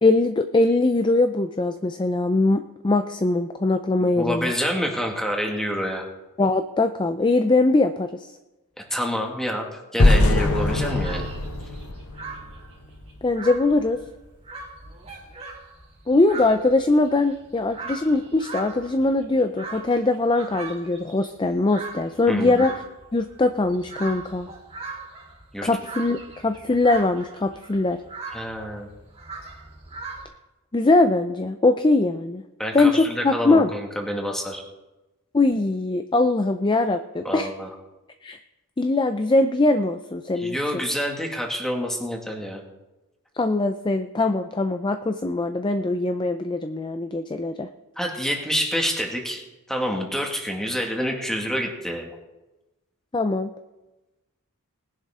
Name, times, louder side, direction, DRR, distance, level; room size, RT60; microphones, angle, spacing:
voice 1, 0.0-4.5 6.4-8.3 13.2-14.0 16.1-22.7 23.1-24.5 25.6-28.0 30.7-32.4 32.7-33.7 35.3-37.5 38.2-38.4 38.8-40.8 43.4-47.7 53.1-53.5, left 2 dB, 20° left, 8 dB, 0.4 m, -21 dB
voice 2, 4.0-6.1 8.9-11.3 22.3-22.6 25.5-25.7 28.3-28.9 32.6-34.6 37.2-37.7 40.4-42.6 48.0-52.1, equal, ahead, 1 dB, 2.0 m, -27 dB
sound 1, 10.0-13.0, left 2 dB, 75° left, 1.2 m, -21 dB
sound 2, 10.8-30.2, right 3 dB, 30° right, 3.2 m, -40 dB
19.5 x 11.0 x 3.7 m, 1.0 s
head